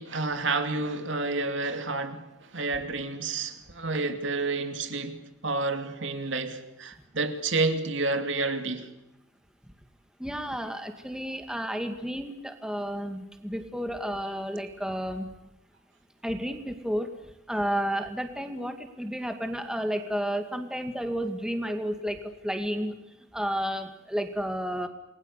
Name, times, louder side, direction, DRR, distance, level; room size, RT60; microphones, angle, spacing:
voice 1, 0.0-8.9, right 3 dB, 70° right, 2.7 m, -30 dB
voice 2, 10.2-15.3 16.2-17.1 17.5-23.0 23.3-24.9, equal, 5° right, 2.2 m, -31 dB
29.0 x 21.5 x 8.4 m
head